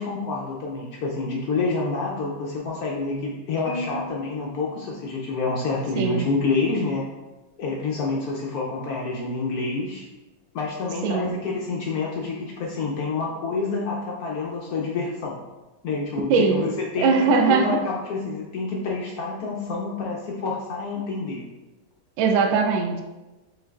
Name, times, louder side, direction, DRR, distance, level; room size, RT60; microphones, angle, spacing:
voice 1, 0.0-7.1 7.6-10.0 10.5-15.4 15.8-21.4, left 3 dB, 75° left, -2 dB, 0.8 m, -28 dB
Marimba xylophone, 3.7-5.8, right 1 dB, 50° right, 1.4 m, -38 dB
voice 2, 16.3-16.6 17.0-17.8 22.2-23.0, right 5 dB, 80° right, 4 dB, 1.3 m, -20 dB
7.1 x 3.2 x 2.3 m, 1.1 s
omnidirectional pair, 2.3 m